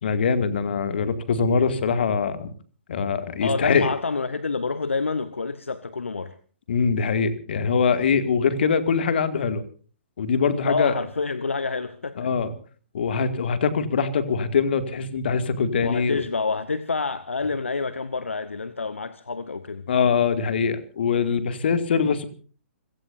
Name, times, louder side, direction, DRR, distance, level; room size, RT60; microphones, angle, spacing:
voice 1, 0.0-2.5 2.9-3.9 6.7-9.6 10.2-10.9 12.2-12.5 12.9-16.2 19.9-22.3, left 5 dB, 50° left, 2.3 m, -23 dB
voice 2, 3.4-6.4 10.6-12.3 15.8-19.9, left 4 dB, 70° left, 1.1 m, -28 dB
30.0 x 17.0 x 2.7 m
figure-of-eight pair, 125°, 7 cm